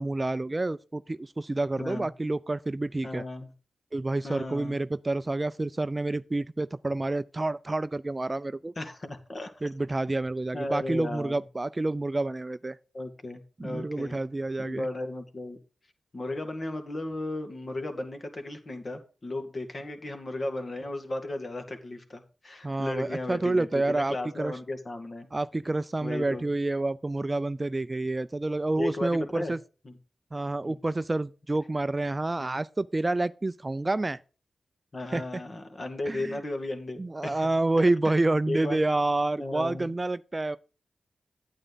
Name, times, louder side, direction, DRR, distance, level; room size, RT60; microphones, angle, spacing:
voice 1, 0.0-3.2 3.9-8.7 9.6-12.8 13.6-14.9 22.6-24.5 25.3-29.6 30.3-34.2 35.1-35.2 36.1-36.4 37.0-40.6, right 2 dB, 30° right, 0.4 m, -28 dB
voice 2, 1.8-2.1 3.0-3.5 4.2-4.8 8.8-9.5 10.5-11.4 12.9-14.2 14.6-15.6 16.1-25.3 26.0-26.5 28.8-29.5 29.8-30.0 30.6-30.8 32.4-32.6 34.9-37.5 38.5-38.8 39.4-40.0, left 2 dB, 45° left, 2.3 m, -35 dB
9.3 x 8.9 x 4.0 m
cardioid pair, 50°, 0 cm